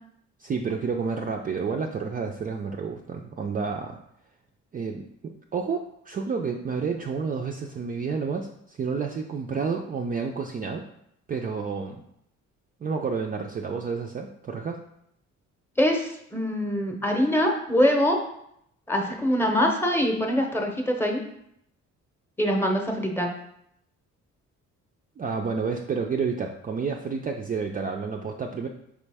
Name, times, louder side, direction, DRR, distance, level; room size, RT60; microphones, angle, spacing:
voice 1, 0.4-4.0 4.7-10.9 11.3-12.0 12.8-14.8 25.2-28.7, right 5 dB, 30° right, 2 dB, 0.4 m, -30 dB
voice 2, 15.8-18.2 18.9-21.2 22.4-23.3, equal, 10° left, 2 dB, 0.8 m, -24 dB
4.8 x 3.1 x 3.4 m, 0.75 s
cardioid pair, 90°, 30 cm